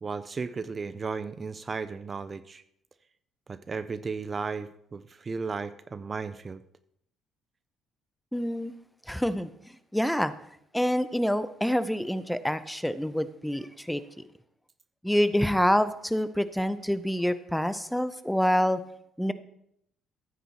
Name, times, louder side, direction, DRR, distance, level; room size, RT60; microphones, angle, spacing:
voice 1, 0.0-2.6 3.5-6.6, right 4 dB, 35° right, 14 dB, 0.4 m, -35 dB
voice 2, 8.3-8.7 9.1-9.5 9.9-10.3 10.7-14.0 15.0-18.8 19.2-19.3, equal, 5° left, 14 dB, 0.7 m, -26 dB
14.0 x 9.1 x 2.9 m, 0.72 s
hypercardioid pair, 50°, 0 cm